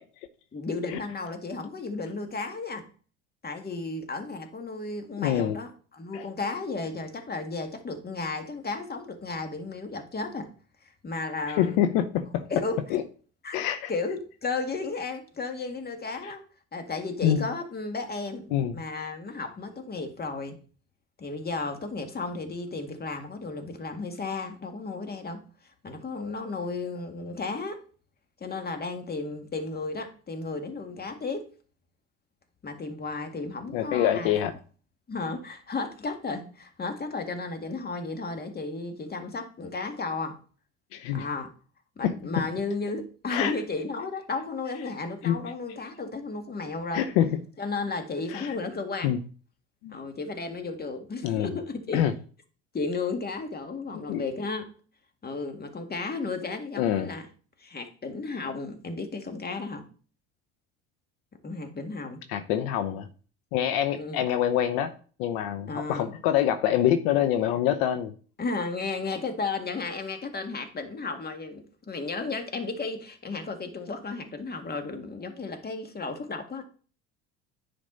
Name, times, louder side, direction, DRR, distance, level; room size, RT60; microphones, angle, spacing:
voice 1, 0.5-2.9 3.4-10.5 11.0-11.8 12.5-12.8 13.4-13.6 13.9-16.4 16.7-20.6 21.2-25.4 25.8-27.8 28.4-31.5 32.6-34.3 35.1-40.4 41.1-41.5 42.0-47.1 47.6-49.1 49.9-52.1 52.7-54.7 55.2-57.3 57.6-59.8 61.4-62.2 63.9-64.2 65.7-66.1 68.4-76.7, left 3 dB, 30° left, 2.1 m, -34 dB
voice 2, 5.2-5.6 6.1-6.2 11.5-12.5 12.9-13.0 13.5-13.9 16.2-16.3 17.2-17.4 18.5-18.7 33.7-34.5 40.9-41.3 42.0-42.5 43.3-43.5 45.2-45.4 46.9-47.4 48.3-48.6 49.0-49.2 49.8-50.0 51.2-51.5 51.9-52.1 54.1-54.2 56.8-57.1 62.3-63.1 63.5-64.9 65.2-68.1, left 10 dB, 75° left, 0.9 m, -26 dB
10.0 x 5.3 x 4.0 m
hypercardioid pair, 70°, 32 cm